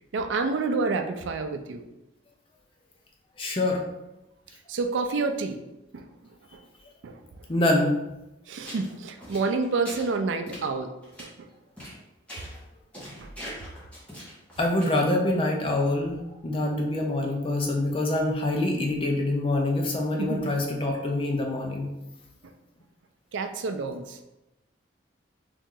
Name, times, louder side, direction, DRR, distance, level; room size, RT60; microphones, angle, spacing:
voice 1, 0.1-1.8 4.7-5.6 5.9-6.1 6.5-6.6 7.0-7.2 8.5-10.9 11.2-11.5 13.2-13.3 20.2-20.5 22.4-22.5 23.3-24.2, right 4 dB, 75° right, 7 dB, 0.4 m, -29 dB
voice 2, 3.4-3.8 7.5-7.9 14.6-21.9, left 1 dB, 30° left, 1 dB, 0.5 m, -25 dB
sound 1, 8.6-8.9 9.2-10.1 10.5-10.6 11.0-11.2 11.8-12.0 12.3-12.6 12.9-15.1, equal, 5° left, 1.0 m, -41 dB
3.0 x 2.7 x 3.6 m, 0.95 s
head